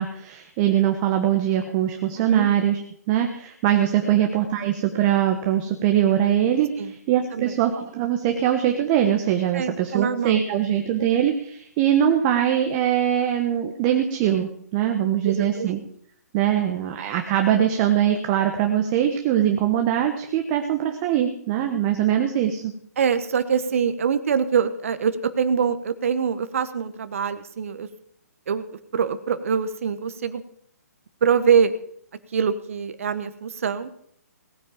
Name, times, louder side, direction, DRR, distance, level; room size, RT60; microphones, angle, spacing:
voice 1, 0.0-2.8 3.1-15.8 16.3-22.7, right 10 dB, 30° right, 5 dB, 1.3 m, -22 dB
voice 2, 2.2-2.5 4.1-4.2 6.8-6.9 7.3-7.5 9.5-10.4 15.2-15.8 23.0-27.9 28.5-28.6 28.9-30.4 31.2-31.7 32.3-33.9, right 7 dB, 55° right, 11 dB, 1.2 m, -24 dB
18.5 x 9.4 x 5.3 m, 0.67 s
figure-of-eight pair, 135°, 9 cm